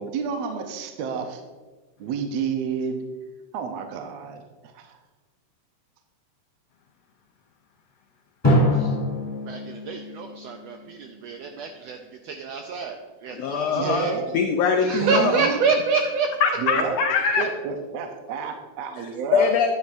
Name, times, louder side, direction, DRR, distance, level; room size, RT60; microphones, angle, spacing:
voice 1, 0.0-1.4 2.0-3.1 3.5-5.0 13.8-14.4 14.9-15.6 16.6-17.0 17.4-19.5, right 6 dB, 75° right, 5 dB, 1.7 m, -30 dB
Drum, 8.4-11.1, left 1 dB, 10° left, 2.3 m, -24 dB
voice 2, 9.5-12.0 12.2-14.1 14.8-16.3, right 5 dB, 90° right, 4 dB, 1.4 m, -27 dB
voice 3, 13.3-14.1 14.3-15.4 16.4-17.4 19.3-19.7, left 6 dB, 80° left, 4 dB, 1.5 m, -22 dB
10.5 x 8.8 x 2.6 m, 1.3 s
omnidirectional pair, 3.5 m